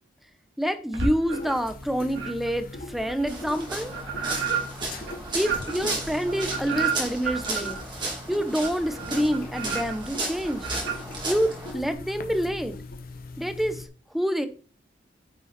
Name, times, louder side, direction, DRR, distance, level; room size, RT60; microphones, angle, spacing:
voice 1, 0.6-3.9 5.3-7.8 8.3-10.7 11.2-12.8 13.4-14.5, equal, ahead, 10 dB, 0.7 m, -27 dB
sound 1, 0.9-1.7 2.1-11.9, right 5 dB, 75° right, 2.8 m, -33 dB
sound 2, 1.3-13.9, left 2 dB, 50° left, 0.9 m, -41 dB
sound 3, 3.3-11.7, right 2 dB, 25° right, 2.3 m, -34 dB
9.6 x 5.5 x 4.1 m, 0.39 s
head